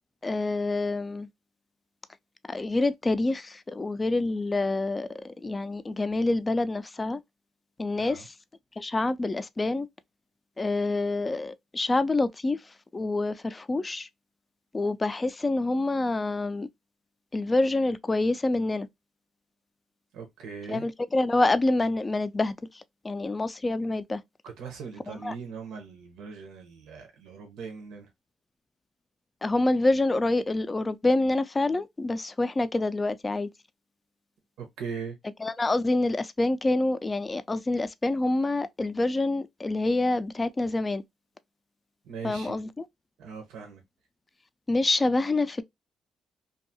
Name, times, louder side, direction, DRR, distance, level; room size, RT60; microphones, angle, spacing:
voice 1, 0.2-1.3 2.5-7.2 7.8-8.3 8.8-9.9 10.6-12.6 12.9-14.1 14.7-16.7 17.3-18.9 20.7-24.2 25.1-25.3 29.4-33.5 35.4-41.0 42.2-42.7 44.7-45.6, left 2 dB, 25° left, 0.3 m, -27 dB
voice 2, 20.1-20.9 24.4-28.1 34.6-35.2 42.0-42.6 43.2-43.8, right 5 dB, 85° right, 0.7 m, -40 dB
2.6 x 2.3 x 2.6 m
cardioid pair, 90°, 0 cm